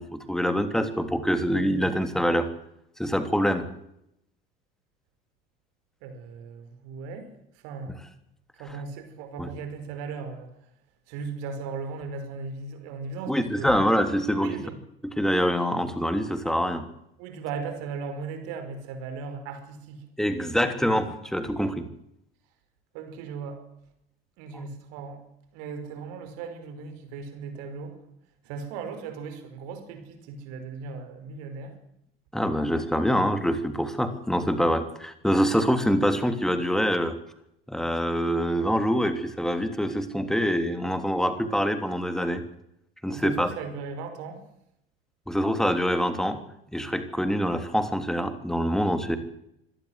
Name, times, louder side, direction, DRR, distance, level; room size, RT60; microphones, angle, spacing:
voice 1, 0.0-2.5 3.0-3.7 9.4-9.5 13.3-14.6 15.0-16.8 20.2-21.9 32.3-37.2 37.7-42.4 43.0-43.5 45.3-46.4 46.7-49.2, equal, ahead, 9 dB, 3.3 m, -25 dB
voice 2, 6.0-7.3 7.6-7.9 8.5-10.5 11.1-13.7 14.4-14.8 17.2-20.0 22.9-23.6 24.4-25.2 25.5-28.0 28.4-31.8 43.1-44.4, right 5 dB, 55° right, 8 dB, 5.4 m, -37 dB
25.5 x 18.0 x 8.1 m, 0.78 s
figure-of-eight pair, 65°, 30 cm